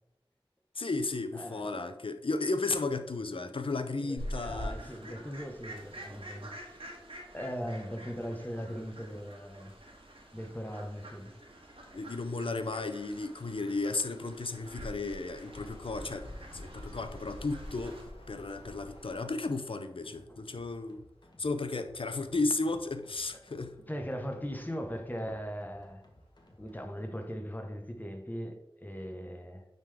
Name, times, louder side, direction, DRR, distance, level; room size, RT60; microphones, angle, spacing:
voice 1, 0.7-4.8 5.1-5.2 11.9-16.3 16.5-18.0 18.3-21.1 21.4-23.8, left 3 dB, 70° left, 0.6 m, -34 dB
voice 2, 1.3-1.7 4.0-6.8 7.3-9.7 10.3-11.3 18.6-18.7 20.3-20.4 23.9-26.0 26.6-29.7, equal, 20° left, 1.0 m, -39 dB
Fowl, 4.2-18.0, equal, 75° right, 1.6 m, -46 dB
sound 1, 15.4-19.8 21.7-21.8 22.0-22.1 23.0-23.1 25.6-25.7 26.2-26.3 26.8-27.0, left 1 dB, 85° left, 1.2 m, -47 dB
sound 2, 20.0-26.8, left 1 dB, 50° left, 1.2 m, -59 dB
9.1 x 3.7 x 3.4 m
wide cardioid pair, 40°, 9 cm